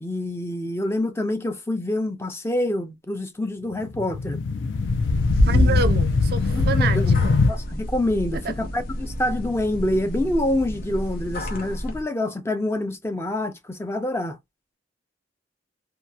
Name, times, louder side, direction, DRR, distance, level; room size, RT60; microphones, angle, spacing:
voice 1, 0.0-4.4 5.4-5.8 6.5-14.4, left 1 dB, 15° left, 0.4 m, -27 dB
sound 1, 3.8-7.5, left 3 dB, 90° left, 0.5 m, -20 dB
sound 2, 4.7-12.0, equal, 50° left, 0.6 m, -33 dB
voice 2, 5.4-7.0 7.2-7.4 8.4-8.5, right 5 dB, 55° right, 0.4 m, -27 dB
2.8 x 2.3 x 2.3 m
head